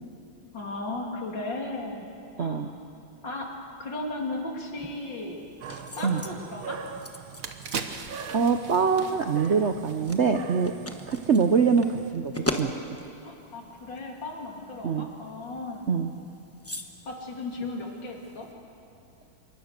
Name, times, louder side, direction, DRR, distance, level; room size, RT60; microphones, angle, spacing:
voice 1, 0.5-2.1 2.4-2.7 3.2-3.5 3.8-5.4 6.0-6.8 13.2-15.9 17.1-18.5, left 2 dB, 55° left, 0 dB, 3.5 m, -35 dB
sound 1, 4.8-18.5, left 1 dB, 10° left, 0.7 m, -41 dB
sound 2, 5.6-12.1, right 6 dB, 70° right, 1.7 m, -42 dB
sound 3, 6.7-6.8 7.2-10.5 10.8-11.0, right 5 dB, 45° right, 1.3 m, -39 dB
voice 2, 8.3-10.7 11.1-12.3 12.6-12.7 14.8-15.1 15.9-16.1, right 5 dB, 85° right, 7 dB, 0.6 m, -24 dB
26.5 x 23.5 x 6.6 m, 2.6 s
omnidirectional pair, 2.4 m